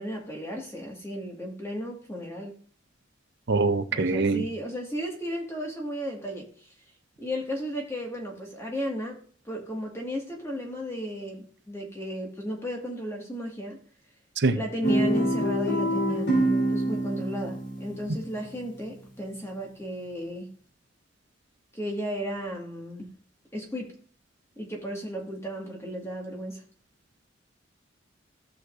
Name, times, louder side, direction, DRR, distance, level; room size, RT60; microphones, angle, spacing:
voice 1, 0.0-2.5 3.9-6.7 7.2-9.2 9.5-13.8 14.5-20.5 21.7-23.1 23.5-24.0 24.6-26.6, equal, 15° left, 1.8 m, -34 dB
voice 2, 3.5-4.4 14.4-14.6, right 3 dB, 65° right, 0.7 m, -23 dB
Guitar, 14.8-19.2, right 1 dB, 65° left, 3.7 m, -27 dB
16.5 x 6.1 x 2.6 m
head